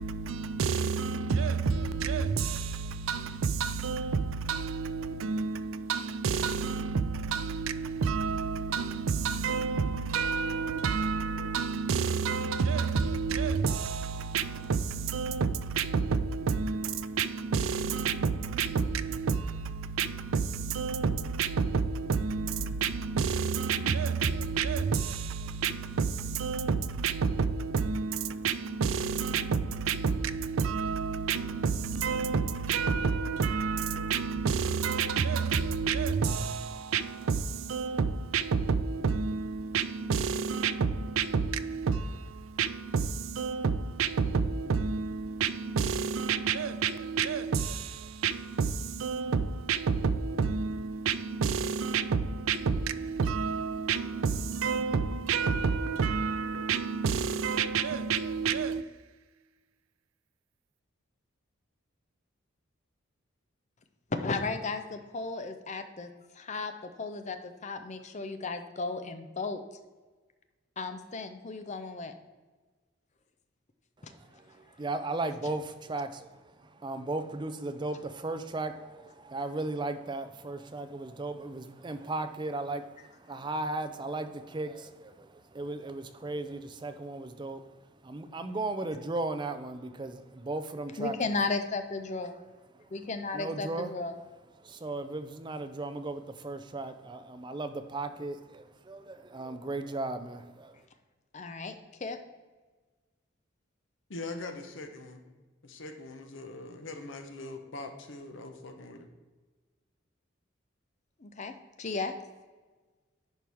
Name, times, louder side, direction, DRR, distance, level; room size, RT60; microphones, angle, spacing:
voice 1, 0.0-58.9, right 5 dB, 80° right, 0.4 m, -29 dB
voice 2, 64.1-66.7 67.0-69.6 70.8-72.1 74.0-74.1 91.0-92.3 92.9-94.1 101.3-102.2 111.2-111.5 111.8-112.1, left 3 dB, 35° left, 0.6 m, -34 dB
voice 3, 74.0-87.6 88.0-91.2 93.3-93.9 94.6-100.8, right 2 dB, 20° right, 0.4 m, -36 dB
voice 4, 104.1-105.2 105.6-109.1, left 2 dB, 65° left, 0.9 m, -42 dB
10.5 x 4.5 x 3.5 m
head